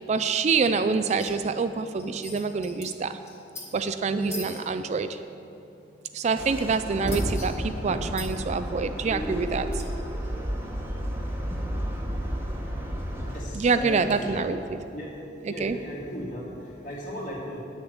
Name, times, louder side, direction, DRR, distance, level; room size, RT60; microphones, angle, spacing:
voice 1, 0.1-3.2 3.7-5.1 6.1-9.7 13.5-14.8 15.4-15.8, right 4 dB, 35° right, 10 dB, 0.3 m, -26 dB
sound 1, 1.1-1.3 1.6-1.7 1.9-2.9 3.2-3.7 4.2-4.6 6.7-7.5 8.1-8.3 9.7-9.9, left 2 dB, 15° left, 2.2 m, -40 dB
sound 2, 6.4-13.4, equal, 15° right, 1.1 m, -31 dB
voice 2, 13.3-14.6 14.9-15.2 15.5-17.6, left 1 dB, 45° left, -4 dB, 2.5 m, -36 dB
9.6 x 6.8 x 7.9 m, 2.8 s
head